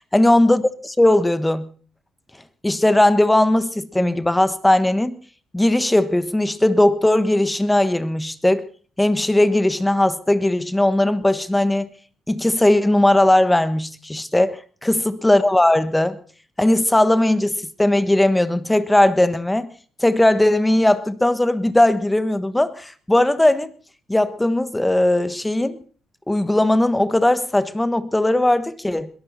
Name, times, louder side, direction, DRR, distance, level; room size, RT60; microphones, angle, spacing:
voice 1, 0.1-1.7 2.6-5.2 5.5-8.7 9.0-11.9 12.3-16.2 16.6-19.7 20.0-23.7 24.1-25.8 26.3-29.1, left 1 dB, 10° left, 1.3 m, -18 dB
21.5 x 13.5 x 4.1 m
cardioid pair, 90°, 0 cm